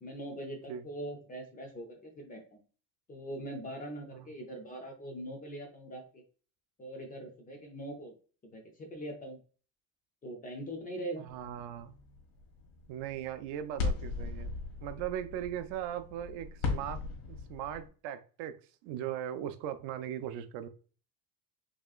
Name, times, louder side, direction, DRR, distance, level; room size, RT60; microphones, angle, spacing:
voice 1, 0.0-2.6 3.1-6.2 6.8-8.1 8.5-9.4 10.2-11.2, right 1 dB, 20° left, 3 dB, 0.4 m, -42 dB
voice 2, 11.2-12.0 12.9-14.5 14.8-17.0 17.3-18.6 18.8-20.7, right 10 dB, 65° right, 10 dB, 0.5 m, -39 dB
sound 1, 11.3-17.9, left 3 dB, 75° left, 1.8 m, -38 dB
4.8 x 2.9 x 2.3 m, 0.39 s
cardioid pair, 165°, 47 cm